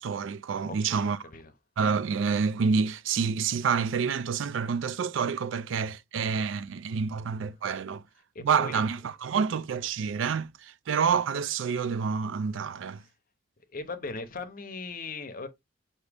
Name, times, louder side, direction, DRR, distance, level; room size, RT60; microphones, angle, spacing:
voice 1, 0.0-1.2 1.8-8.0 8.4-13.0, right 6 dB, 75° right, 0.4 m, -28 dB
voice 2, 0.7-1.5 8.3-8.9 13.7-15.5, left 3 dB, 45° left, 0.7 m, -39 dB
4.9 x 2.7 x 3.3 m
head